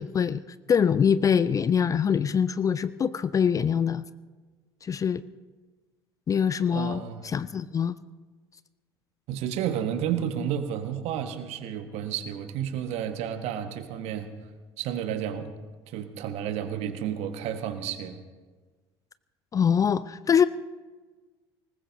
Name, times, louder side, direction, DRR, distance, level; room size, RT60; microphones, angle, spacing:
voice 1, 0.0-4.1 4.8-5.2 6.3-8.0 19.5-20.5, left 7 dB, 25° left, 17 dB, 0.4 m, -24 dB
voice 2, 6.7-7.2 9.3-14.3 14.8-15.5 15.9-18.2, right 9 dB, 50° right, 8 dB, 1.4 m, -31 dB
25.0 x 20.0 x 2.7 m, 1.4 s
figure-of-eight pair, 65°, 14 cm